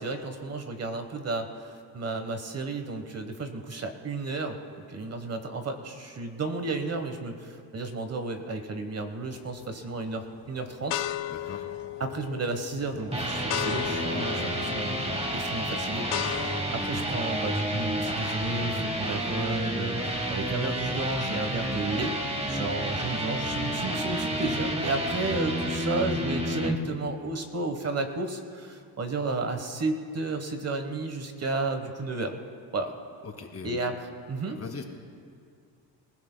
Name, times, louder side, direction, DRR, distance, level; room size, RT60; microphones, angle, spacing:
voice 1, 0.0-4.6 4.9-11.1 12.0-15.0 15.3-22.2 22.5-32.4 32.7-32.9 33.6-33.9 34.3-34.6, right 3 dB, 35° right, 6 dB, 1.1 m, -32 dB
sound 1, 9.3-9.7 10.3-16.6, left 13 dB, 70° left, 0.7 m, -35 dB
voice 2, 11.3-11.7 22.6-22.8 33.2-33.8 34.5-34.8, left 5 dB, 35° left, 2 dB, 2.3 m, -40 dB
sound 2, 12.9-26.8, right 1 dB, 15° right, 1.4 m, -30 dB
26.5 x 16.0 x 2.2 m, 2.3 s
cardioid pair, 105°, 44 cm